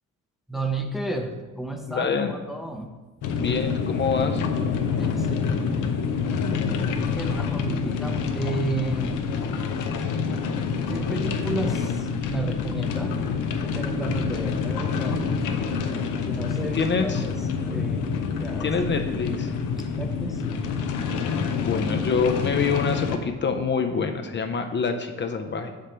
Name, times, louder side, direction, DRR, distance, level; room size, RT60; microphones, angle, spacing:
voice 1, 0.5-1.3 1.6-2.1 2.5-2.9 5.0-6.0 7.0-9.1 10.9-11.8 12.3-13.1 13.6-15.4 16.3-17.3 17.7-18.0 18.4-18.7 20.0-20.6, right 2 dB, ahead, 4 dB, 0.7 m, -32 dB
voice 2, 1.9-2.4 3.4-4.4 16.7-17.3 18.6-19.5 21.6-25.7, left 5 dB, 40° left, 5 dB, 0.6 m, -26 dB
sound 1, 3.2-23.2, left 5 dB, 90° left, 0.7 m, -27 dB
6.5 x 5.1 x 4.4 m, 1.2 s
cardioid pair, 90°, 30 cm